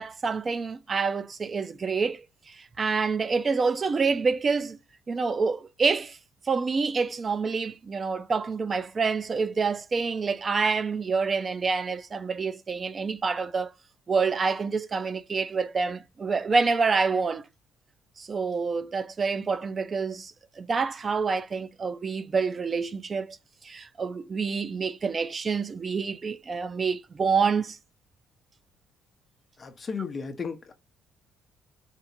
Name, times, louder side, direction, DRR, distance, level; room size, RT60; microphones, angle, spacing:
voice 1, 0.0-4.8 5.1-6.2 6.4-13.7 14.1-17.5 18.2-23.4 23.6-27.8, right 4 dB, 30° right, 0.4 m, -27 dB
voice 2, 29.6-30.7, left 5 dB, 25° left, 0.7 m, -34 dB
4.4 x 2.4 x 2.8 m
cardioid pair, 135°, 0 cm